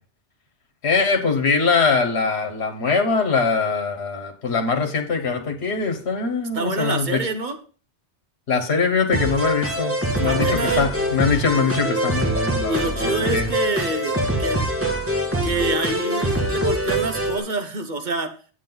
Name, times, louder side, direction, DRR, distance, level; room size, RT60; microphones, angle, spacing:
voice 1, 0.8-7.2 8.5-13.4, left 5 dB, 70° left, 6 dB, 1.5 m, -22 dB
voice 2, 6.5-7.6 10.2-10.9 12.7-14.6 15.4-18.3, right 3 dB, 45° right, 6 dB, 1.0 m, -27 dB
sound 1, 9.1-17.4, right 1 dB, 10° right, 1.7 m, -24 dB
8.4 x 7.5 x 3.9 m, 0.39 s
omnidirectional pair, 1.1 m